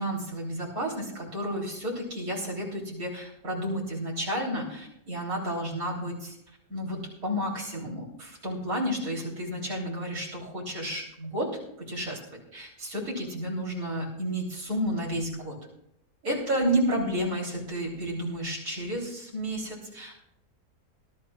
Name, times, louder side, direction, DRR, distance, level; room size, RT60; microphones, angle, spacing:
voice 1, 0.0-6.4 6.7-11.5 11.8-12.2 12.5-15.6 16.2-20.1, equal, 65° right, -3 dB, 3.9 m, -31 dB
21.5 x 12.0 x 2.4 m, 0.77 s
omnidirectional pair, 1.6 m